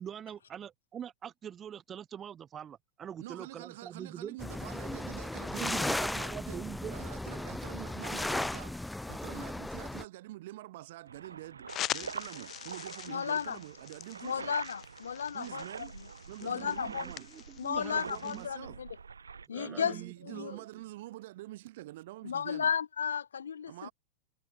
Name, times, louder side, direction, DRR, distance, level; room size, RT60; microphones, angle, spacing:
voice 1, 0.0-4.4 5.5-7.0 16.4-18.5 19.5-20.8, right 9 dB, 25° right, 7.3 m, -44 dB
voice 2, 3.2-6.6 6.9-8.8 9.1-14.6 15.3-15.9 16.3-17.3 18.0-18.8 19.7-22.7 23.7-23.9, right 17 dB, 55° right, 4.2 m, -46 dB
sound 1, 4.4-10.0, left 1 dB, 5° left, 1.6 m, -36 dB
sound 2, 11.1-19.5, right 5 dB, 75° right, 3.3 m, -45 dB
sound 3, 11.7-18.5, left 13 dB, 30° left, 4.0 m, -43 dB
voice 3, 13.1-13.6 14.2-15.9 16.4-17.1 17.6-18.9 19.5-20.0 20.3-20.5 22.2-23.9, left 7 dB, 70° left, 0.6 m, -34 dB
figure-of-eight pair, 90°, 0 cm